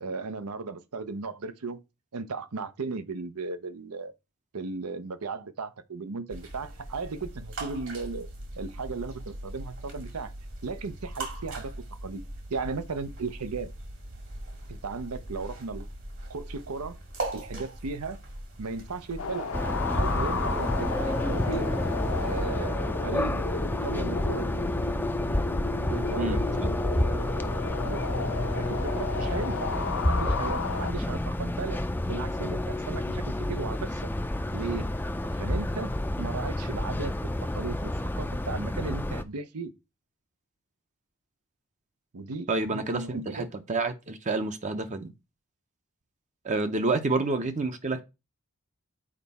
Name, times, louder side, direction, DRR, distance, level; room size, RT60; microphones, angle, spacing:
voice 1, 0.0-1.8 2.1-4.1 4.5-8.3 8.6-10.3 10.6-11.7 12.0-12.2 12.5-13.7 14.7-15.9 16.3-17.0 17.3-18.2 18.6-19.5 19.9-21.7 22.2-23.5 23.8-24.5 25.9-26.4 27.8-29.7 30.1-31.8 32.1-34.1 34.5-34.9 35.2-35.9 36.2-39.7 42.1-43.5 47.1-47.3, right 4 dB, 85° right, 0.7 m, -36 dB
sound 1, 6.3-22.5, right 1 dB, 60° right, 2.0 m, -40 dB
sound 2, 19.2-30.9, left 4 dB, 65° left, 0.8 m, -34 dB
sound 3, 19.5-39.2, left 1 dB, 10° left, 0.4 m, -29 dB
voice 2, 26.2-26.8 42.5-45.1 46.4-48.0, right 3 dB, 35° right, 0.6 m, -29 dB
7.4 x 4.6 x 4.1 m
head